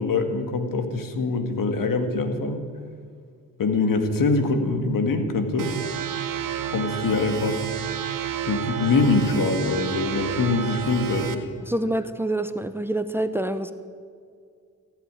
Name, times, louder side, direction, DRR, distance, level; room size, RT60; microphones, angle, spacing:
voice 1, 0.0-2.6 3.6-5.7 6.7-7.6 8.4-11.5, left 3 dB, 65° left, 7 dB, 2.0 m, -24 dB
sound 1, 5.6-11.3, right 9 dB, 65° right, 1.4 m, -30 dB
voice 2, 11.6-13.7, right 1 dB, 5° right, 11 dB, 0.9 m, -26 dB
15.5 x 8.5 x 9.8 m, 2.2 s
cardioid pair, 60°, 35 cm